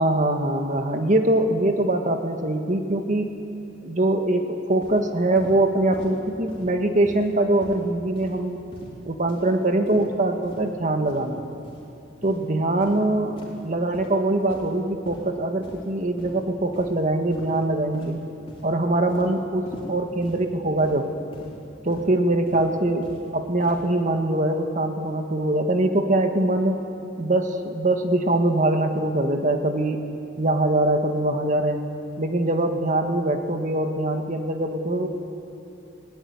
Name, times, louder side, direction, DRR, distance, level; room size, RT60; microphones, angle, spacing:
voice 1, 0.0-3.4 3.8-8.6 9.0-11.4 12.2-18.2 18.6-21.1 21.8-26.8 27.2-30.0 30.4-31.8 32.2-35.1, right 1 dB, 45° right, 5 dB, 1.6 m, -23 dB
sound 1, 4.8-5.0 5.4-5.6 5.9-6.2 6.5-6.7 7.0-7.3 7.6-7.8 8.2-8.4 8.7-9.0 9.3-9.5 9.9-10.1 10.4-10.7 11.1-11.3 11.6-11.8 12.2-12.4 12.8-13.0 13.4-13.6 13.9-14.1 14.5-14.8 15.0-15.2 15.6-15.9 16.2-16.4 16.7-16.9 17.3-17.6 17.9-18.2 18.5-18.7 19.1-19.3 19.7-19.9 20.2-20.4 20.8-21.0 21.3-21.5 21.9-22.1 22.5-22.7 23.0-23.2 23.6-23.8, equal, 30° left, 4.1 m, -42 dB
19.5 x 17.0 x 9.5 m, 2.9 s
head